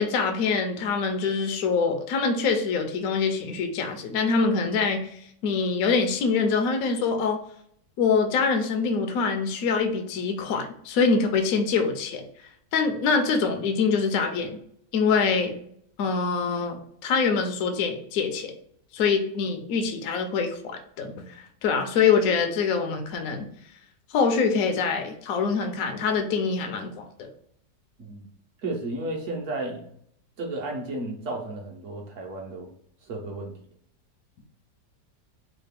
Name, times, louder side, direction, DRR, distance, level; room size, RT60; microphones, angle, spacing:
voice 1, 0.0-7.4 8.0-12.2 12.7-14.6 14.9-15.5 16.0-18.5 18.9-23.5 24.1-27.3, left 5 dB, 70° left, 5 dB, 0.9 m, -24 dB
voice 2, 28.6-29.9 30.4-32.7 33.0-33.6, right 2 dB, 55° right, -1 dB, 1.0 m, -33 dB
3.3 x 2.4 x 3.4 m, 0.68 s
omnidirectional pair, 1.8 m